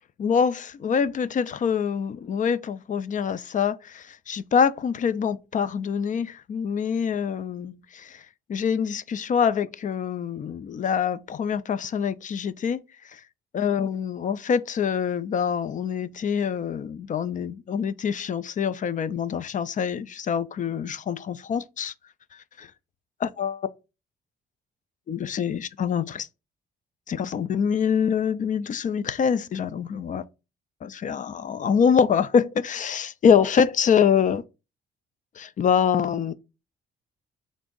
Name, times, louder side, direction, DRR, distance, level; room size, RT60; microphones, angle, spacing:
voice 1, 0.2-8.2 8.5-12.8 13.1-13.2 13.5-21.9 22.6-22.7 23.4-23.6 25.1-26.3 27.1-30.2 30.8-34.4 35.4-36.3, left 7 dB, 40° left, 0.4 m, -25 dB
3.5 x 2.6 x 3.7 m
cardioid pair, 90°, 20 cm